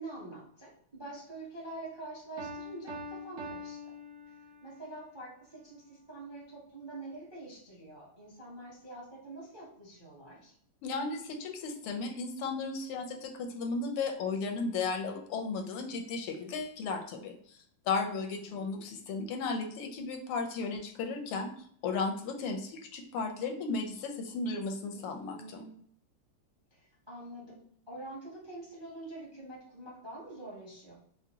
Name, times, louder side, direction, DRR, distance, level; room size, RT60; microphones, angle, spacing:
voice 1, 0.0-3.9 4.2-4.4 4.6-10.5 18.2-18.8 24.9-25.7 26.7-30.9, right 2 dB, 35° right, -5 dB, 0.4 m, -46 dB
Piano, 2.4-4.8, left 1 dB, 60° right, 1.0 m, -43 dB
voice 2, 10.8-17.6 17.9-25.6, left 4 dB, 90° left, 3 dB, 1.5 m, -35 dB
5.0 x 2.1 x 2.8 m, 0.62 s
omnidirectional pair, 2.4 m